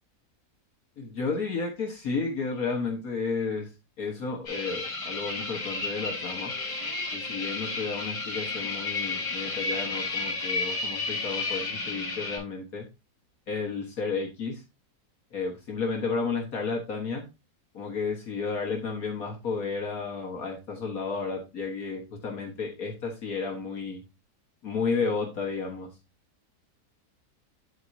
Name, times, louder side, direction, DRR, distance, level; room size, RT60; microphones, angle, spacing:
voice 1, 1.0-3.7 4.0-6.5 7.1-12.8 13.5-14.6 15.3-17.2 17.7-24.0 24.6-25.9, left 4 dB, 60° left, 1 dB, 1.7 m, -32 dB
sound 1, 4.5-12.4, left 3 dB, 75° left, 3.5 m, -32 dB
11.0 x 4.5 x 2.6 m, 0.26 s
omnidirectional pair, 1.8 m